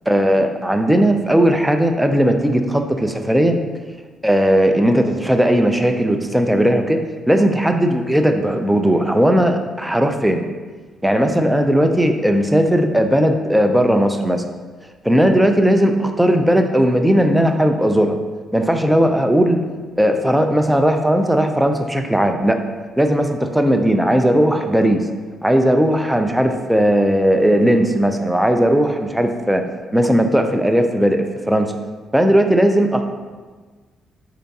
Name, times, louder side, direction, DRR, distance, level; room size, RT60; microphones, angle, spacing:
voice 1, 0.1-3.6 4.2-7.0 7.3-10.4 11.0-14.4 15.0-18.2 18.5-19.6 20.0-22.6 23.0-25.0 25.4-29.6 29.9-31.8 32.1-33.0, equal, 5° right, 5 dB, 0.3 m, -17 dB
3.9 x 3.3 x 2.7 m, 1.4 s
cardioid pair, 90°, 0 cm